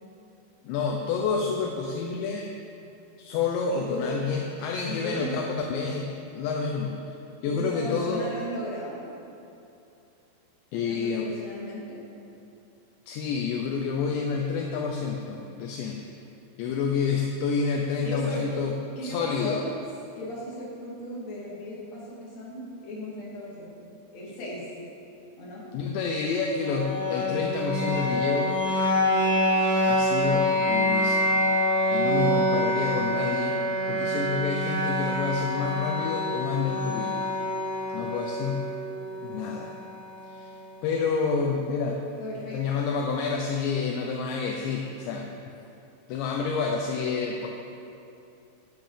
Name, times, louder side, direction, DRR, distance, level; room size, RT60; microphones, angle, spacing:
voice 1, 0.6-2.5 3.2-7.2 7.4-8.3 10.7-11.3 13.1-16.0 16.6-18.7 19.0-19.6 25.7-28.6 29.9-31.3 31.9-33.6 33.9-37.2 37.9-38.7 39.2-39.7 40.3-40.5 40.8-42.0 42.4-45.3 46.1-47.5, left 5 dB, 80° left, 1 dB, 2.9 m, -29 dB
voice 2, 3.7-4.1 4.8-5.3 7.4-9.0 10.7-12.0 18.0-18.4 19.0-19.6 20.1-23.8 24.1-24.7 25.4-26.0 42.2-42.6, left 1 dB, 40° left, -6 dB, 3.6 m, -36 dB
sound 1, 26.6-40.6, left 1 dB, 65° right, 1.1 m, -26 dB
15.0 x 9.3 x 5.2 m, 2.8 s
omnidirectional pair, 5.4 m